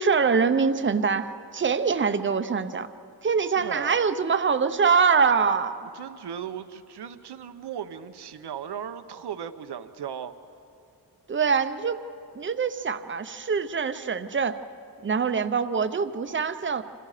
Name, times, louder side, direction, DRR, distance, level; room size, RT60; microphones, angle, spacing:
voice 1, 0.0-2.9 3.2-5.9 11.3-12.0 12.3-14.6 15.0-16.8, right 5 dB, 30° right, 10 dB, 0.8 m, -24 dB
voice 2, 3.6-4.1 5.9-10.3, right 8 dB, 85° right, 9 dB, 1.0 m, -37 dB
27.5 x 27.0 x 5.0 m, 2.5 s
wide cardioid pair, 150°, 39 cm